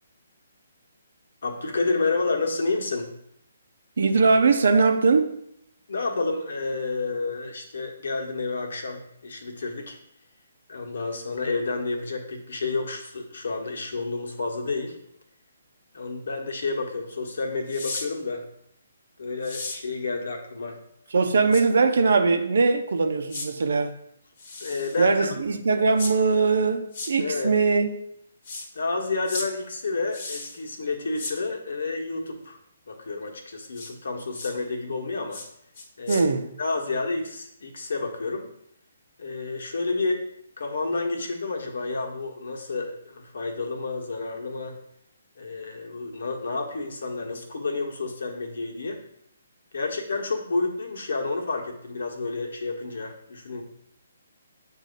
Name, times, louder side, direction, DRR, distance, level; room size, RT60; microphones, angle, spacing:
voice 1, 1.4-3.1 5.9-10.0 10.7-15.0 15.9-18.5 19.2-20.8 24.6-25.2 27.2-27.6 28.7-32.6 32.9-35.4 36.0-36.2 36.6-38.5 39.2-40.2 40.6-44.8 45.4-49.0 49.7-53.6, left 3 dB, 65° left, 1.3 m, -30 dB
voice 2, 4.0-5.4 21.1-24.0 25.0-27.9 36.1-36.5, right 4 dB, 65° right, 0.7 m, -21 dB
sound 1, 17.7-18.1 19.4-19.8 21.5-21.6 23.3-23.5 24.4-25.0 26.0-26.1 26.9-27.1 28.4-28.7 29.3-29.5 30.1-30.6 31.2-31.4 33.7-33.9 34.3-34.5 35.3-35.5 35.8-36.2, left 3 dB, 45° left, 1.2 m, -35 dB
7.5 x 2.7 x 5.2 m
figure-of-eight pair, 140°, 0 cm